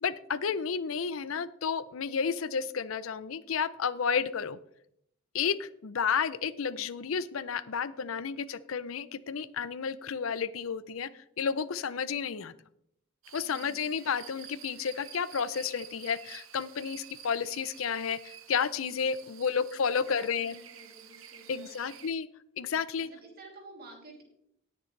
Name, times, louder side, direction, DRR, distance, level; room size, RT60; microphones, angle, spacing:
voice 1, 0.0-4.6 5.3-11.1 11.4-12.5 13.3-18.2 18.5-20.5 21.5-22.3 22.6-23.1, left 6 dB, 90° left, 16 dB, 0.5 m, -31 dB
sound 1, 13.2-22.1, right 9 dB, 85° right, 1.1 m, -50 dB
voice 2, 13.4-14.0 19.2-19.6 19.9-22.0 23.0-24.2, right 2 dB, 50° right, 0 dB, 3.0 m, -52 dB
19.0 x 6.7 x 3.2 m, 0.71 s
head